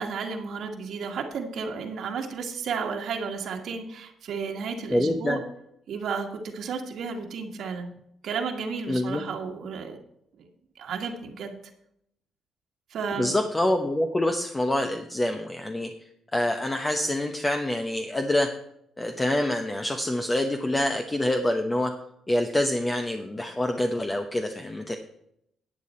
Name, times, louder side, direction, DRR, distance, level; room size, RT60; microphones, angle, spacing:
voice 1, 0.0-5.4 5.9-6.3 6.5-7.9 8.2-10.0 10.4-10.5 10.7-11.5 12.9-13.3, right 5 dB, 70° right, 2 dB, 1.6 m, -32 dB
voice 2, 4.9-5.4 8.9-9.2 13.2-15.9 16.3-18.5 19.0-21.9 22.3-25.0, left 1 dB, 20° left, 5 dB, 0.9 m, -26 dB
11.5 x 8.5 x 4.3 m, 0.75 s
cardioid pair, 90°, 0 cm